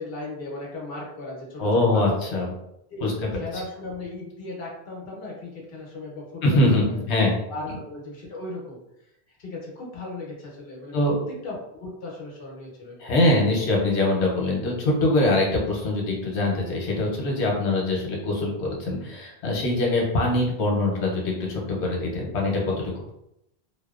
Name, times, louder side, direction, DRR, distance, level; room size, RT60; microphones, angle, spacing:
voice 1, 0.0-2.2 2.9-3.0 3.3-7.0 7.5-8.8 9.4-10.9 11.4-13.2, left 2 dB, 60° left, -2 dB, 0.9 m, -37 dB
voice 2, 1.6-2.5 3.0-3.4 6.4-7.3 10.9-11.1 13.0-23.1, left 2 dB, 85° left, -1 dB, 1.0 m, -23 dB
2.7 x 2.0 x 2.3 m, 0.82 s
omnidirectional pair, 1.1 m